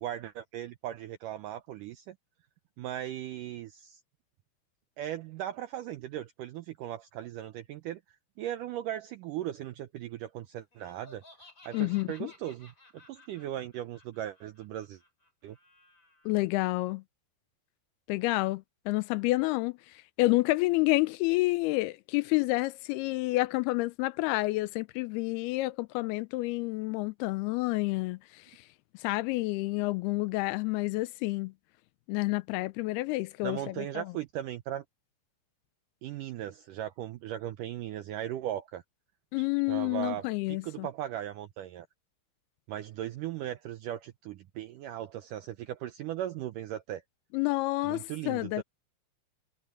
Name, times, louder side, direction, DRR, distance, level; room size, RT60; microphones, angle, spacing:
voice 1, 0.0-2.2 2.8-4.0 5.0-8.0 8.4-11.2 11.7-15.0 15.4-15.6 33.4-34.8 36.0-38.8 39.4-41.9 42.7-47.0 47.8-48.6, right 12 dB, 80° right, 1.9 m, -38 dB
Laughter, 10.7-16.3, left 2 dB, 20° left, 5.2 m, -57 dB
voice 2, 11.7-12.3 16.3-17.0 18.1-19.8 20.2-28.4 29.0-31.5 32.1-34.1 39.3-40.9 47.3-48.6, left 21 dB, 85° left, 2.5 m, -29 dB
omnidirectional pair, 4.6 m